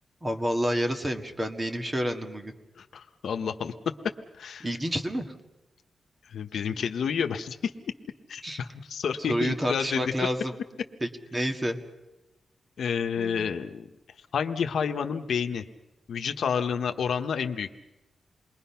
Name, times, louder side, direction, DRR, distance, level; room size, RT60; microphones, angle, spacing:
voice 1, 0.2-2.5 4.6-5.3 8.4-8.6 9.3-10.5 11.0-11.8 13.2-13.5, equal, 15° right, 5 dB, 1.8 m, -29 dB
voice 2, 2.8-3.7 4.3-4.7 6.3-7.7 8.3-10.3 12.8-13.9 14.3-15.6 16.1-17.7, left 7 dB, 75° left, 7 dB, 1.1 m, -29 dB
28.0 x 21.5 x 5.8 m, 1.0 s
wide cardioid pair, 160°, 0 cm